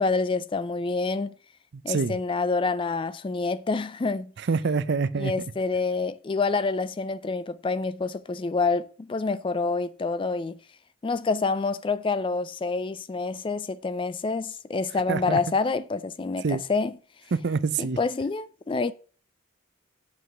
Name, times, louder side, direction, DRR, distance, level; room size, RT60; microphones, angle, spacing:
voice 1, 0.0-1.3 1.8-4.3 5.2-10.6 11.0-17.0 17.8-18.9, left 4 dB, 25° left, 0.3 m, -27 dB
voice 2, 1.7-2.2 4.5-5.3 15.1-15.4 16.4-16.6 17.3-18.0, right 5 dB, 55° right, 0.5 m, -26 dB
7.8 x 4.7 x 6.6 m
head